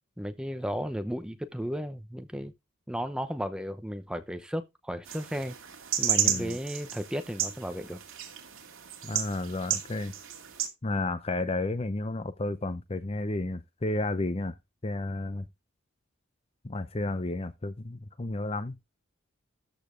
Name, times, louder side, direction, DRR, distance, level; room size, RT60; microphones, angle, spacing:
voice 1, 0.2-2.5 2.9-5.6 6.0-8.0, equal, 5° right, 0.8 m, -34 dB
sound 1, 5.1-10.7, right 10 dB, 70° right, 2.4 m, -32 dB
voice 2, 6.2-6.6 9.0-10.1 10.8-14.5 14.8-15.4 16.6-18.8, left 2 dB, 30° left, 0.6 m, -32 dB
13.5 x 5.2 x 3.8 m
head